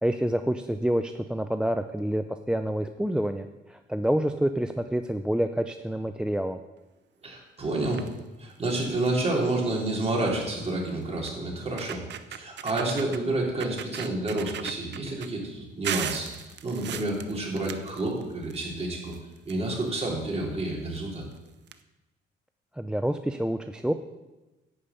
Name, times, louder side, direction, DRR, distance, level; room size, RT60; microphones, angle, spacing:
voice 1, 0.0-6.6 22.8-23.9, right 1 dB, 5° right, 8 dB, 0.5 m, -28 dB
voice 2, 7.2-8.0 8.4-12.0 12.3-16.3 16.6-19.1 19.4-21.2, right 2 dB, 30° right, -3 dB, 3.9 m, -29 dB
sound 1, 7.8-8.2 8.7-8.8 9.1-9.3 10.5-10.6 11.3-11.4 11.7-13.2 13.6-15.3 15.8-18.6 18.9-20.0 20.9-21.0 21.3-21.4 21.7-21.8, right 9 dB, 60° right, 0.7 m, -37 dB
11.0 x 5.1 x 8.3 m, 1.1 s
cardioid pair, 90°, 20 cm